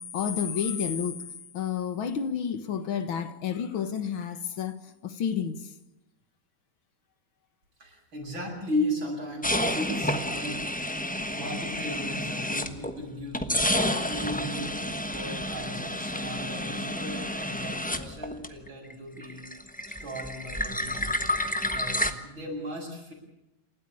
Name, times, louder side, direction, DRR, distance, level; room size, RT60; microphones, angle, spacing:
voice 1, 0.1-1.2 1.5-4.7 5.0-5.6, left 7 dB, 80° left, 2.3 m, -30 dB
voice 2, 7.8-10.6 11.3-13.5 13.8-19.5 19.9-21.1 21.7-23.1, left 1 dB, 75° right, 8.6 m, -36 dB
sound 1, 9.4-13.0 13.3-18.9 19.2-22.1, left 1 dB, 5° left, 0.8 m, -30 dB
28.0 x 13.0 x 8.8 m
omnidirectional pair, 2.2 m